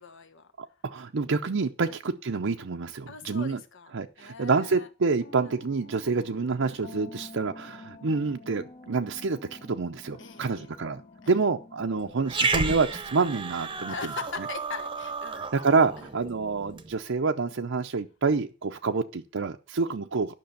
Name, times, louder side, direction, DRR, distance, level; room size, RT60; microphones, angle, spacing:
voice 1, 0.0-0.5 1.9-2.0 3.1-4.9 5.5-5.6 10.2-10.7 11.2-11.4 13.9-15.4 16.0-16.1, left 5 dB, 65° left, 9 dB, 1.3 m, -41 dB
voice 2, 0.6-3.6 3.9-11.0 11.3-13.9 15.5-20.3, right 4 dB, 65° right, 5 dB, 0.6 m, -27 dB
sound 1, 5.2-14.3, left 2 dB, 40° left, 1.2 m, -49 dB
Growling, 12.3-16.9, right 4 dB, 25° right, 0.9 m, -32 dB
10.5 x 6.1 x 6.9 m, 0.34 s
head